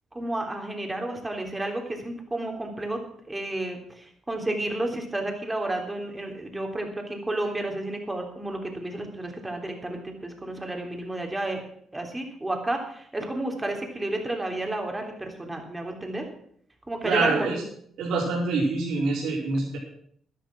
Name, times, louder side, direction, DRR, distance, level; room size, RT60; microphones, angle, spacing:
voice 1, 0.1-3.0 3.3-11.6 11.9-16.2 16.9-17.6, right 1 dB, 15° right, 2 dB, 3.3 m, -31 dB
voice 2, 17.0-17.6 18.0-19.8, right 3 dB, 80° right, -4 dB, 4.9 m, -25 dB
11.5 x 11.0 x 6.3 m, 0.64 s
cardioid pair, 90°, 0 cm